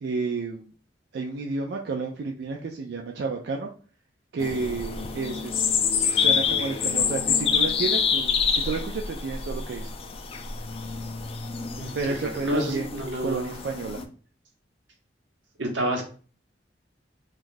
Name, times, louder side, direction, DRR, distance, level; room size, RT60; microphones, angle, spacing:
voice 1, 0.0-0.7 1.1-3.7 4.3-9.9 11.9-14.0 15.8-16.0, right 4 dB, 60° right, 2 dB, 0.4 m, -31 dB
sound 1, 4.4-14.0, left 6 dB, 30° left, 0.3 m, -27 dB
voice 2, 11.8-13.6 15.6-16.0, right 1 dB, 90° right, 2 dB, 0.9 m, -29 dB
2.6 x 2.4 x 3.7 m, 0.40 s
head